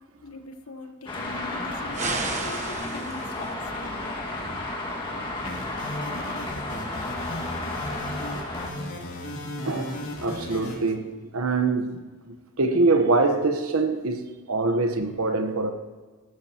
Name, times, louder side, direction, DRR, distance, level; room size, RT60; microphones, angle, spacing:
voice 1, 0.2-4.2, left 2 dB, 80° left, 1.3 m, -42 dB
Traffic noise roadway noise, 1.1-8.7, left 2 dB, 25° left, 2.0 m, -32 dB
sound 1, 1.9-3.5, right 3 dB, 35° right, 1.1 m, -32 dB
sound 2, 5.4-10.7, left 1 dB, 65° left, 2.9 m, -35 dB
voice 2, 9.6-15.7, right 3 dB, 80° right, 1.2 m, -24 dB
19.0 x 14.0 x 3.0 m
head